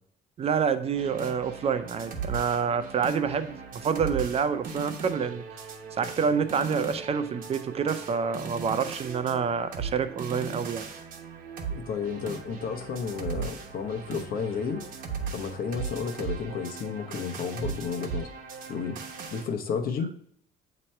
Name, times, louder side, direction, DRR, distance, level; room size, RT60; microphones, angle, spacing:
voice 1, 0.4-5.4 6.0-10.9, right 6 dB, 35° right, 11 dB, 0.4 m, -27 dB
sound 1, 0.9-19.5, right 5 dB, 55° right, 1.0 m, -38 dB
voice 2, 11.7-14.8 15.3-18.3 18.7-19.0 19.3-20.1, left 6 dB, 60° left, 5 dB, 0.9 m, -32 dB
8.8 x 3.0 x 4.3 m, 0.67 s
cardioid pair, 110°, 17 cm